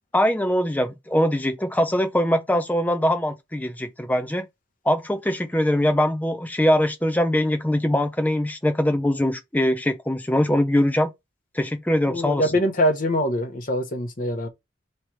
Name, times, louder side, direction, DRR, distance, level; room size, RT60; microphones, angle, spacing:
voice 1, 0.1-4.5 4.9-11.1 11.5-12.5, left 1 dB, 10° left, 0.5 m, -22 dB
voice 2, 12.1-14.5, equal, 40° left, 1.0 m, -23 dB
3.2 x 2.9 x 4.7 m
head